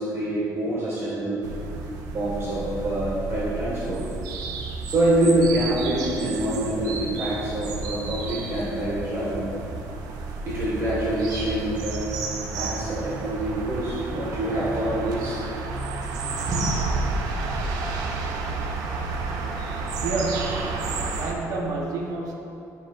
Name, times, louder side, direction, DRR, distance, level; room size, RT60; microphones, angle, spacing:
voice 1, 0.0-1.4 2.1-4.0 4.8-9.4 10.5-12.0 12.5-15.4 16.5-16.8, right 1 dB, 45° right, -7 dB, 1.7 m, -26 dB
sound 1, 1.4-21.3, right 3 dB, 90° right, 0.7 m, -31 dB
voice 2, 20.0-20.7 21.1-22.3, right 3 dB, 75° right, 0 dB, 1.0 m, -29 dB
8.9 x 7.3 x 2.5 m, 2.7 s
cardioid pair, 135°, 6 cm